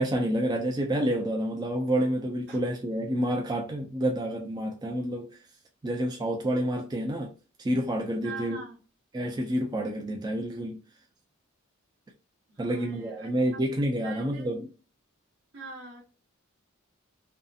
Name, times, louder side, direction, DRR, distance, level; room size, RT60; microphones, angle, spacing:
voice 1, 0.0-5.3 5.8-7.3 7.6-8.6 9.1-10.8 12.6-14.7, right 1 dB, 20° right, 0.3 m, -28 dB
voice 2, 8.2-8.8 12.5-13.4 14.0-14.5 15.5-16.0, right 3 dB, 55° right, 0.8 m, -43 dB
2.7 x 2.4 x 2.2 m
head